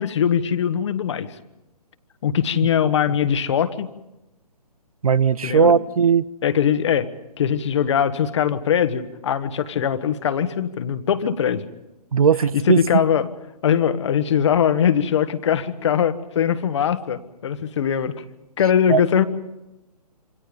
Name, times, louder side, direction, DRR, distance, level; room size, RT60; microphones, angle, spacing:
voice 1, 0.0-1.4 2.2-3.9 5.4-5.7 6.4-7.1 7.4-11.7 12.5-13.3 13.6-18.2 18.6-19.2, left 8 dB, 45° left, 11 dB, 1.6 m, -21 dB
voice 2, 5.0-6.2 12.1-12.8 18.9-19.0, right 6 dB, 60° right, 20 dB, 0.9 m, -17 dB
27.5 x 25.0 x 5.3 m, 0.93 s
figure-of-eight pair, 135°, 20 cm